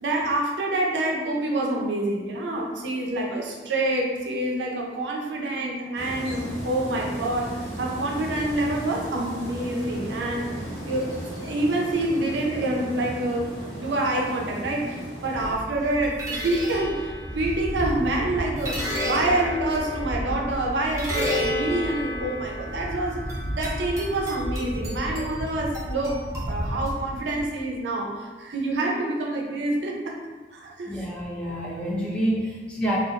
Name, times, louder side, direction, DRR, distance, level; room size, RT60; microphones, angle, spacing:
voice 1, 0.0-10.5 10.8-13.5 13.8-23.2 23.5-26.2 26.5-30.2 30.5-31.1, right 1 dB, 80° right, -1 dB, 0.5 m, -27 dB
sound 1, 5.9-15.6, equal, 75° left, 0.9 m, -36 dB
sound 2, 15.3-27.4, equal, 20° right, 0.7 m, -31 dB
voice 2, 30.9-33.0, right 1 dB, 5° left, -5 dB, 0.4 m, -28 dB
2.4 x 2.4 x 2.8 m, 1.3 s
head